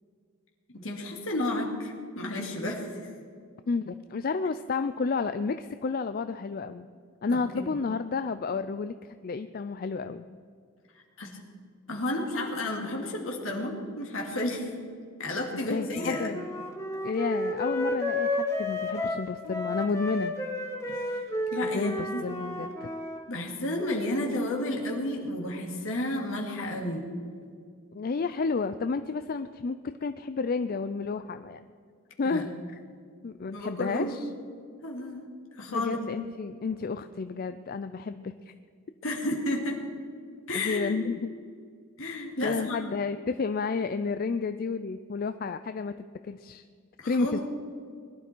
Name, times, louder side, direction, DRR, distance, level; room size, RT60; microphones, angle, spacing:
voice 1, 0.7-3.1 7.3-7.7 10.9-11.4 11.9-14.7 15.2-16.3 20.9-21.1 21.5-22.2 23.3-27.1 32.2-32.4 33.5-34.2 34.8-35.2 35.6-36.0 39.0-39.8 40.5-41.0 42.0-42.8 47.0-47.4, left 1 dB, 65° left, 0 dB, 2.6 m, -32 dB
voice 2, 3.7-6.9 7.2-8.9 9.2-10.3 15.7-16.4 17.0-20.3 21.7-22.9 27.9-31.6 32.2-32.5 33.2-34.3 35.7-38.5 40.5-41.3 42.4-45.9 46.2-46.6 47.0-47.4, left 4 dB, 45° left, 10 dB, 0.4 m, -31 dB
Wind instrument woodwind instrument, 15.9-23.2, left 1 dB, 15° left, 1.3 m, -32 dB
21.0 x 12.0 x 4.5 m, 2.1 s
head